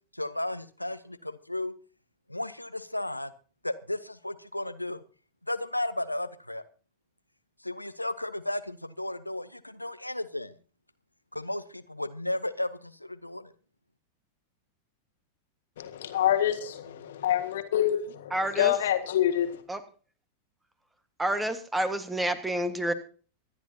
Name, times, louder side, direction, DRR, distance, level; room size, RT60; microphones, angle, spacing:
voice 1, 0.1-1.7 2.3-3.3 3.6-5.0 5.5-6.6 7.6-10.6 11.3-13.5, left 1 dB, 85° left, 12 dB, 0.6 m, -34 dB
voice 2, 15.8-19.6, left 11 dB, 60° left, 9 dB, 1.6 m, -27 dB
voice 3, 18.3-18.7 19.7-19.8 21.2-22.9, right 1 dB, 10° right, 11 dB, 1.5 m, -28 dB
25.0 x 10.5 x 2.8 m, 0.39 s
figure-of-eight pair, 90°, 0 cm